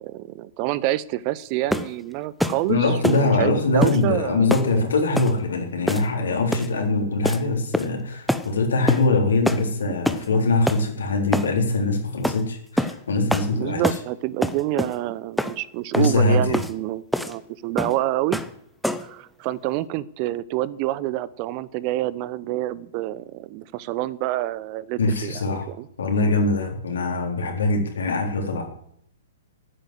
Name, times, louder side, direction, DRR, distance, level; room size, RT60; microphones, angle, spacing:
voice 1, 0.0-4.5 13.5-18.4 19.0-25.9, right 15 dB, 35° right, 21 dB, 0.8 m, -27 dB
sound 1, 1.7-2.0 2.4-2.6 3.0-3.3 3.8-4.0 4.5-4.7 5.2-5.3 5.9-6.2 6.5-6.7 7.2-7.4 7.7-8.0 8.3-8.5 8.9-9.1 9.5-9.7 10.1-10.3 10.7-10.8 11.3-11.5 12.2-12.4 12.8-13.0 13.3-13.5 13.8-14.1 14.4-15.0 15.4-15.6 15.9-16.1 16.5-16.7 17.1-17.4 17.8-18.0 18.3-18.5 18.8-19.1, equal, ahead, 0.9 m, -25 dB
voice 2, 2.4-13.8 15.9-16.6 25.0-25.7 26.0-28.7, left 3 dB, 65° left, 2 dB, 4.0 m, -22 dB
14.5 x 9.2 x 7.9 m, 0.71 s
figure-of-eight pair, 115°, 0 cm